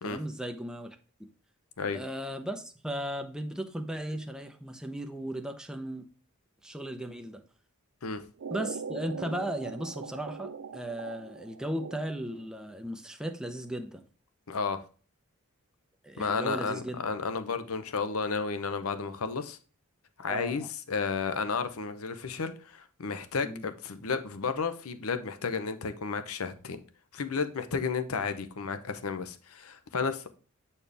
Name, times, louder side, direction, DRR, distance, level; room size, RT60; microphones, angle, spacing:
voice 1, 0.0-1.0 1.9-6.0 6.6-7.4 8.5-14.0 16.0-17.0 20.3-20.7 23.4-23.6, right 1 dB, 5° right, 0.7 m, -36 dB
sound 1, 8.4-12.4, right 5 dB, 65° right, 0.4 m, -41 dB
voice 2, 14.5-14.8 16.2-19.6 20.2-26.8 27.1-30.3, left 5 dB, 75° left, 0.8 m, -32 dB
8.7 x 4.4 x 3.4 m
head